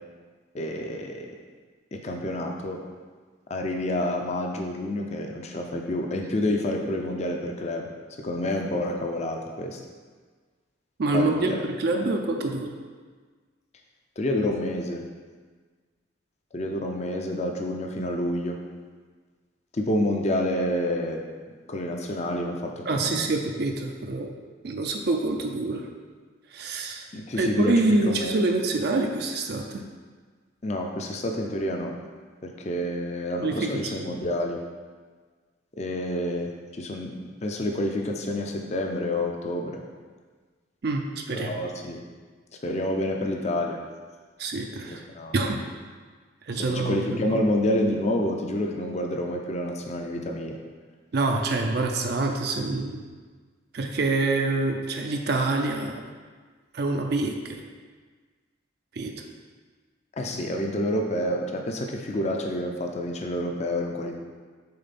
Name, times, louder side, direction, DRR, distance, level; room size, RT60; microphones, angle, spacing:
voice 1, 0.5-1.3 1.9-2.8 3.5-7.9 8.2-9.8 11.1-11.6 14.2-15.0 16.5-18.6 19.7-21.2 21.7-23.3 27.1-27.7 28.1-28.4 30.6-31.9 32.4-34.6 35.8-39.8 41.3-42.0 42.6-43.8 44.9-45.3 46.6-50.6 60.1-64.1, left 1 dB, 35° left, 2 dB, 0.5 m, -28 dB
voice 2, 11.0-12.7 22.9-24.3 24.6-25.9 26.5-27.1 27.4-29.8 33.4-34.1 40.8-41.6 44.4-45.0 45.3-45.6 46.5-47.4 51.1-53.0 53.7-56.0 56.7-57.6 58.9-59.1, right 2 dB, 55° right, 3 dB, 0.5 m, -26 dB
6.6 x 3.7 x 4.2 m, 1.5 s
head